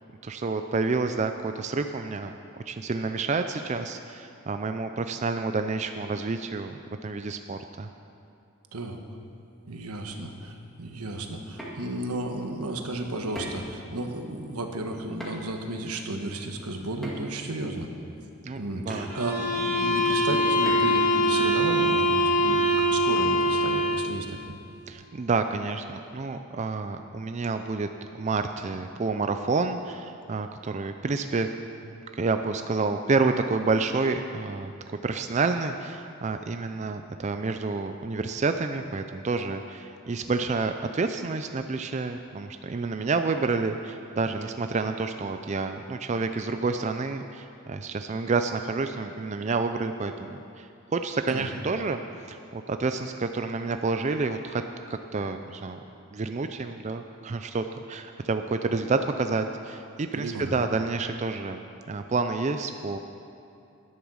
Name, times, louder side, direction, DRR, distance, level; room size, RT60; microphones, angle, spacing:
voice 1, 0.2-2.3 2.7-7.9 18.4-19.1 24.9-27.9 28.1-31.5 32.1-34.7 35.0-52.0 52.3-54.6 54.9-55.8 56.1-61.6 61.9-63.0, right 4 dB, 30° right, 7 dB, 0.4 m, -29 dB
voice 2, 9.7-17.9 18.6-24.6 51.3-51.5 60.1-60.5, right 2 dB, 90° right, 4 dB, 1.2 m, -33 dB
sound 1, 11.6-11.7 13.3-13.7 15.2-15.5 17.0-17.4 18.9-19.0 20.6-20.9, equal, ahead, 2.1 m, -37 dB
sound 2, 19.1-24.1, equal, 50° right, 3.4 m, -23 dB
12.0 x 10.0 x 6.3 m, 2.7 s
head